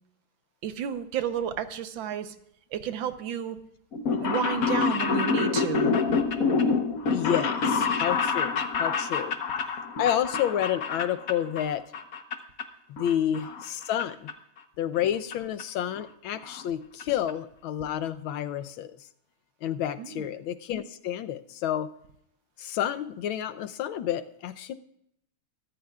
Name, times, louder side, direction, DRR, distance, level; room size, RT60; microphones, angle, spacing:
voice 1, 0.6-2.3 2.7-3.6 4.2-7.2 20.0-20.3, right 9 dB, 75° right, 10 dB, 1.6 m, -32 dB
sound 1, 3.9-11.7 11.9-12.6 13.0-14.0 14.3-14.4 15.3-15.4 15.6-15.7 16.0-16.1 16.3-16.6 17.0-17.1 17.3-17.4, left 5 dB, 50° left, 1.3 m, -27 dB
voice 2, 7.1-9.3 10.0-11.8 13.0-14.3 14.8-18.9 19.6-21.9 22.6-24.7, left 10 dB, 85° left, 10 dB, 1.5 m, -30 dB
23.5 x 14.0 x 2.4 m, 0.75 s
omnidirectional pair, 2.2 m